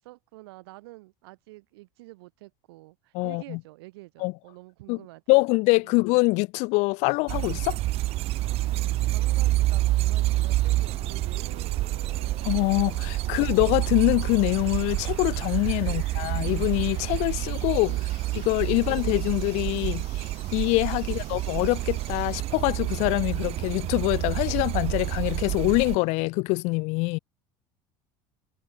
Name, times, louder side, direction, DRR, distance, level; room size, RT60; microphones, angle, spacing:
voice 1, 0.0-5.4 5.8-6.0 9.0-12.5 13.2-13.5 15.8-16.1 17.8-18.2 18.7-19.1 21.0-21.3, right 21 dB, 90° right, 8.0 m, -48 dB
voice 2, 3.1-3.6 4.2-4.3 4.9-5.0 5.3-7.8 12.4-17.9 18.3-27.2, left 27 dB, 65° left, 0.4 m, -24 dB
sound 1, 7.3-26.0, right 17 dB, 55° right, 0.9 m, -28 dB
sound 2, 8.4-22.4, left 23 dB, 85° left, 5.1 m, -52 dB
supercardioid pair, 125°, 13 cm